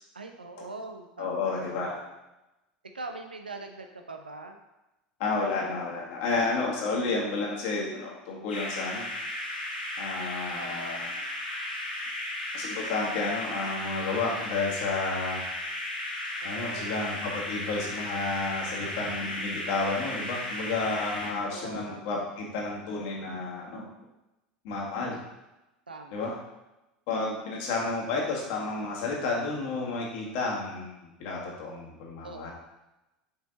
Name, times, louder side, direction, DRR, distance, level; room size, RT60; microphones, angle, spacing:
voice 1, 0.1-2.1 2.9-4.6 10.5-11.3 16.4-17.1 21.5-22.1 25.9-26.4 32.2-32.5, right 3 dB, 80° right, 4 dB, 0.7 m, -42 dB
voice 2, 1.2-2.0 5.2-9.1 10.0-11.1 12.5-15.5 16.4-23.8 24.6-25.2 26.1-26.3 27.1-32.5, left 3 dB, 55° left, -2 dB, 1.9 m, -31 dB
sound 1, 8.5-21.3, left 1 dB, 85° left, 1.5 m, -35 dB
6.3 x 5.2 x 4.0 m, 0.98 s
figure-of-eight pair, 75°, 5 cm